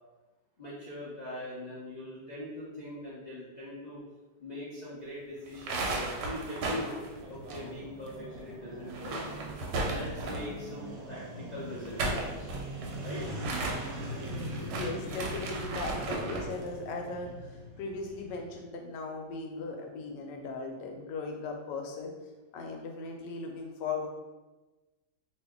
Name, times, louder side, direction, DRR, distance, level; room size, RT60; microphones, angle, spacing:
voice 1, 0.6-4.0 4.4-7.0 7.3-9.2 9.8-12.5 13.0-13.2, left 1 dB, 65° left, -8 dB, 0.4 m, -41 dB
sound 1, 5.5-8.1 8.3-8.4 8.8-10.6 11.7-16.5, right 2 dB, 85° right, 1.3 m, -35 dB
sound 2, 7.2-18.6, right 1 dB, 65° right, 1.0 m, -42 dB
voice 2, 14.5-22.1 22.5-24.1, left 3 dB, 80° left, 2 dB, 1.2 m, -38 dB
2.7 x 2.6 x 3.5 m, 1.2 s
omnidirectional pair, 1.9 m